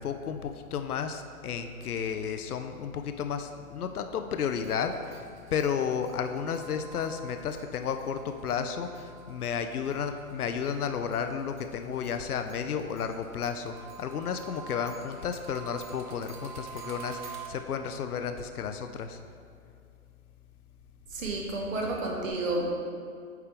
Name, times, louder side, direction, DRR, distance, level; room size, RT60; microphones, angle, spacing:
voice 1, 0.0-19.2, left 7 dB, 85° left, 7 dB, 0.6 m, -32 dB
sound 1, 4.5-10.7 11.1-17.5, right 6 dB, 35° right, 0.6 m, -47 dB
voice 2, 21.1-22.7, right 2 dB, 60° right, -1 dB, 1.5 m, -31 dB
9.0 x 3.6 x 3.5 m, 2.4 s
hypercardioid pair, 135°, 44 cm